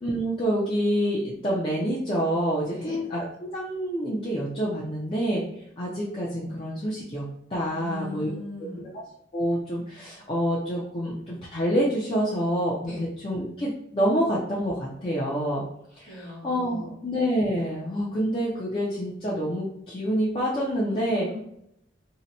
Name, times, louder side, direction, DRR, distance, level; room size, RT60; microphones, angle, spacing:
voice 1, 0.0-5.4 5.8-7.2 7.5-8.3 9.3-15.6 16.0-21.3, equal, 30° left, -6 dB, 0.5 m, -27 dB
voice 2, 2.7-3.0 7.7-8.9 12.9-13.0 16.0-17.0 20.8-21.4, left 2 dB, 45° left, -4 dB, 1.2 m, -39 dB
2.8 x 2.2 x 4.0 m, 0.75 s
head